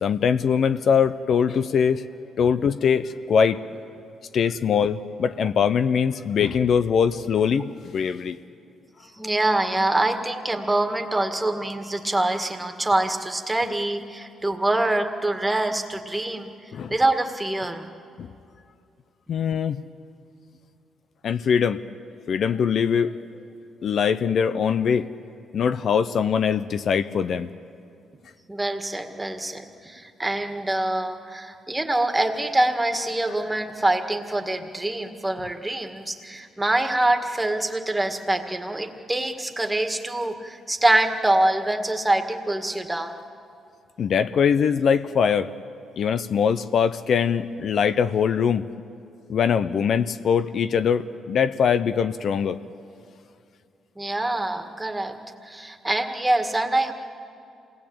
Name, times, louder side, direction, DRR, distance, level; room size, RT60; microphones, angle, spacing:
voice 1, 0.0-2.0 2.4-3.6 4.3-8.4 16.7-16.9 18.2-18.3 19.3-19.8 21.2-21.8 22.3-23.2 23.8-25.1 25.5-27.5 44.0-45.5 46.0-48.7 49.3-52.6, left 7 dB, 60° left, 11 dB, 0.7 m, -22 dB
voice 2, 9.0-16.5 16.9-17.8 28.5-43.2 54.0-55.2 55.4-56.9, right 1 dB, 10° right, 5 dB, 1.9 m, -25 dB
27.0 x 19.0 x 8.8 m, 2.5 s
cardioid pair, 90°, 0 cm